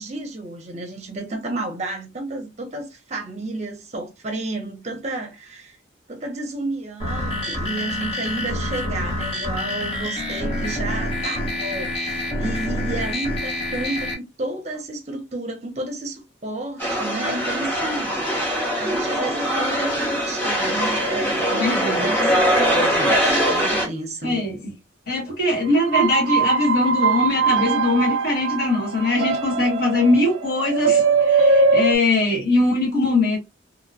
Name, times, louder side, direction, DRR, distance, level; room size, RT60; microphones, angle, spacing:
voice 1, 0.0-5.8 6.1-18.4 18.8-24.4, right 2 dB, 35° right, 0.6 m, -31 dB
sound 1, 7.0-14.1, left 1 dB, 30° left, 0.9 m, -27 dB
sound 2, 16.8-23.9, equal, 10° left, 0.7 m, -22 dB
voice 2, 21.5-22.1 24.2-24.6 25.1-33.4, left 2 dB, 50° left, 1.5 m, -21 dB
sound 3, 25.8-32.0, right 4 dB, 90° right, 0.4 m, -21 dB
2.9 x 2.1 x 2.5 m
head